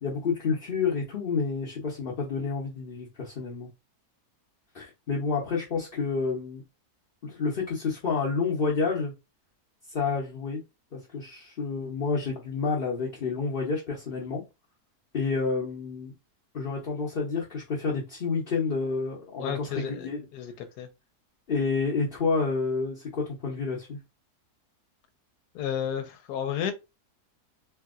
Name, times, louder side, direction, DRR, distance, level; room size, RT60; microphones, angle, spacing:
voice 1, 0.0-3.7 4.7-6.6 7.2-9.1 9.9-10.6 10.9-14.4 15.1-16.1 16.5-20.2 21.5-24.0, left 4 dB, 45° left, 0.8 m, -29 dB
voice 2, 19.4-20.9 25.5-26.7, left 9 dB, 85° left, 1.2 m, -32 dB
3.3 x 2.7 x 2.4 m
omnidirectional pair, 1.7 m